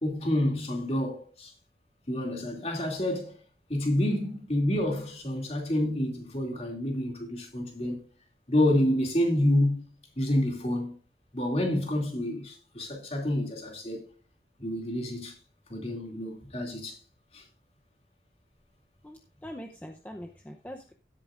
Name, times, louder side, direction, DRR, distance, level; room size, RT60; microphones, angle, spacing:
voice 1, 0.0-1.5 2.1-3.3 3.7-8.0 8.5-9.8 10.2-10.9 11.3-14.1 14.6-15.4 15.7-17.0 17.3-17.4, left 1 dB, 35° left, 2.6 m, -28 dB
voice 2, 19.0-20.9, equal, 10° left, 0.7 m, -43 dB
16.5 x 8.6 x 2.5 m
head